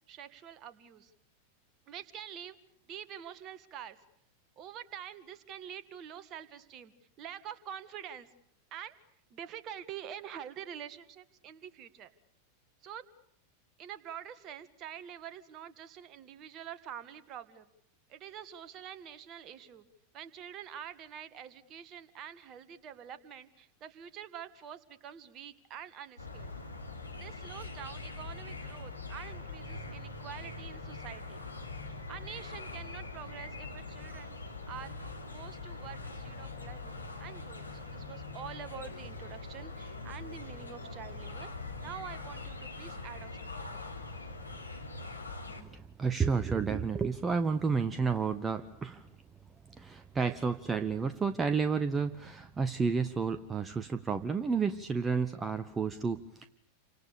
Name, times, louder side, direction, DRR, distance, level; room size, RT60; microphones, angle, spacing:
voice 1, 0.1-1.1 1.9-2.6 2.9-4.0 4.6-6.9 7.2-8.3 8.7-9.0 9.3-12.1 12.8-13.0 13.8-17.7 18.1-19.8 20.1-26.5 27.1-31.4 31.9-34.3 34.7-34.9 35.3-41.5 41.8-43.9, right 9 dB, 35° right, 12 dB, 1.9 m, -46 dB
sound 1, 26.2-45.6, left 3 dB, 85° left, 3.2 m, -43 dB
voice 2, 45.6-49.1 49.7-56.5, right 5 dB, 15° right, 10 dB, 1.1 m, -31 dB
29.5 x 25.5 x 6.9 m, 0.73 s
figure-of-eight pair, 90°, 0 cm